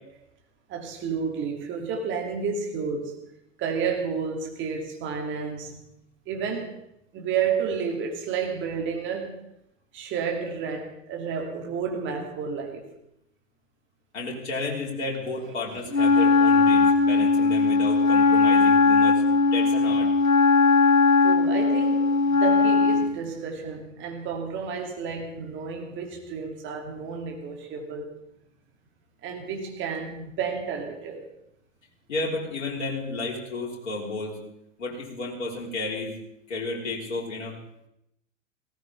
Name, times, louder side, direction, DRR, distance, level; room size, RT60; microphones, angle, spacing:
voice 1, 0.7-3.2 3.6-5.8 6.3-6.8 7.1-9.4 9.9-12.9 21.2-28.1 29.2-31.3, right 6 dB, 30° right, 2 dB, 2.9 m, -31 dB
voice 2, 14.1-19.2 19.5-20.1 32.1-34.4 34.8-36.2 36.5-37.6, left 3 dB, 60° left, -3 dB, 4.0 m, -32 dB
Wind instrument woodwind instrument, 15.9-23.2, left 4 dB, 85° left, 1.1 m, -19 dB
19.0 x 17.0 x 3.6 m, 0.79 s
figure-of-eight pair, 100°, 39 cm